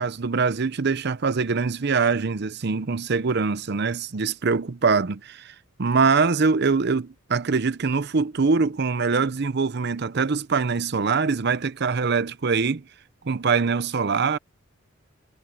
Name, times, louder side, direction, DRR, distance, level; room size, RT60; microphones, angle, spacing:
voice 1, 0.0-12.8 13.2-14.4, right 4 dB, 55° right, 0.7 m, -23 dB
head